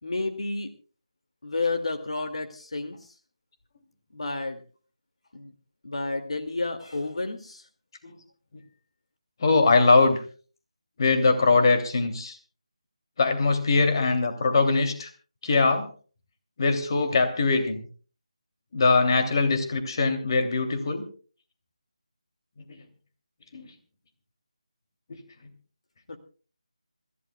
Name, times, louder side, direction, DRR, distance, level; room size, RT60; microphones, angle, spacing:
voice 1, 0.0-0.7 1.4-3.1 4.1-4.6 5.3-5.5 5.8-7.6 26.1-26.2, left 3 dB, 65° left, 6 dB, 2.4 m, -31 dB
voice 2, 9.4-10.2 11.0-12.4 13.2-15.1 15.4-15.9 16.6-17.8 18.7-21.0 22.7-22.8 23.5-23.7 25.1-25.2, left 3 dB, 40° left, 6 dB, 2.9 m, -22 dB
27.0 x 15.5 x 2.3 m, 0.39 s
figure-of-eight pair, 160°, 4 cm